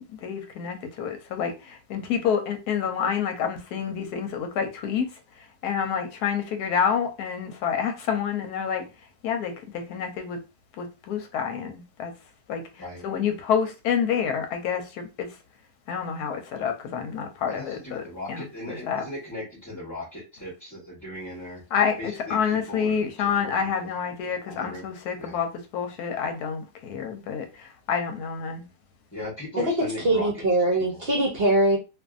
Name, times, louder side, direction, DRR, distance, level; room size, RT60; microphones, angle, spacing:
voice 1, 0.2-5.2 5.6-8.8 9.2-10.4 10.8-12.1 12.5-12.6 13.0-15.3 15.9-19.0 21.7-28.6, left 7 dB, 85° left, 6 dB, 1.2 m, -28 dB
voice 2, 17.5-21.6 22.0-23.9 24.4-24.9 25.2-25.4 29.1-30.3 30.7-31.0, left 1 dB, 15° left, -6 dB, 0.9 m, -38 dB
voice 3, 30.0-31.8, right 1 dB, 50° right, -1 dB, 0.8 m, -22 dB
2.6 x 2.6 x 2.4 m, 0.28 s
omnidirectional pair, 1.6 m